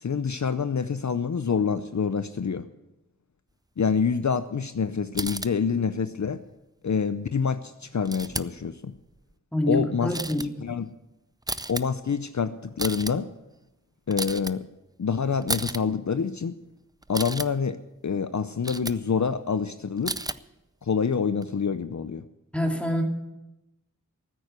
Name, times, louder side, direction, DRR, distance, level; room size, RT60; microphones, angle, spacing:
voice 1, 0.0-2.7 3.8-6.4 6.8-8.9 9.7-10.1 10.6-10.9 11.7-13.3 14.1-14.6 15.0-16.5 17.1-17.8 18.0-20.2 20.8-22.2, left 6 dB, 60° left, 11 dB, 0.6 m, -26 dB
sound 1, 5.1-5.5 8.0-8.6 8.9-9.3 10.1-10.5 11.4-11.8 12.7-13.1 14.1-14.5 15.4-15.8 17.0-17.5 18.6-19.0 20.0-20.4 21.4-21.5, right 2 dB, 10° right, 0.5 m, -32 dB
voice 2, 9.5-10.5 22.5-23.0, left 1 dB, 5° left, 2 dB, 2.6 m, -26 dB
15.0 x 8.8 x 8.1 m, 0.94 s
wide cardioid pair, 50°, 33 cm